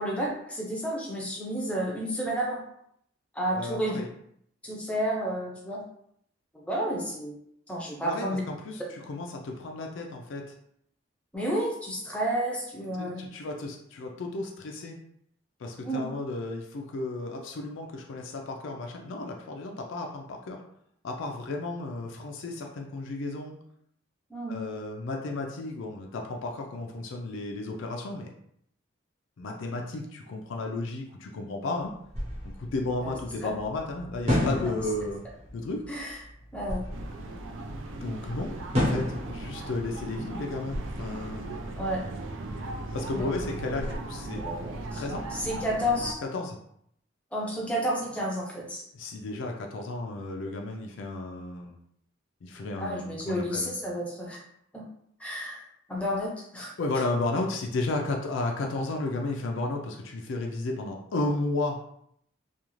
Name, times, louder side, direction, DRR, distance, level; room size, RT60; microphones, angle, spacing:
voice 1, 0.0-2.6 3.3-4.0 4.6-5.8 6.5-7.4 7.7-8.4 11.3-13.2 15.8-16.1 24.3-24.6 33.0-33.1 33.4-33.5 35.9-36.2 36.5-36.8 41.8-42.0 43.1-43.4 44.3-45.0 45.3-46.2 47.3-48.8 52.8-54.4 54.7-54.9 55.2-55.6 55.9-56.7, equal, 5° left, -3 dB, 0.5 m, -31 dB
voice 2, 3.5-4.1 8.0-10.4 13.0-15.0 15.6-20.6 21.0-23.5 24.5-28.3 29.4-31.9 32.4-35.2 35.5-35.8 37.9-41.6 42.9-44.4 44.9-45.3 46.3-46.6 48.9-51.8 52.4-53.7 56.8-61.8, left 2 dB, 80° left, 1 dB, 0.4 m, -33 dB
sound 1, 32.1-40.3 40.7-41.5, left 1 dB, 30° right, 0.8 m, -32 dB
sound 2, 36.9-46.1, right 2 dB, 80° right, 0.4 m, -37 dB
2.4 x 2.3 x 3.0 m, 0.70 s
head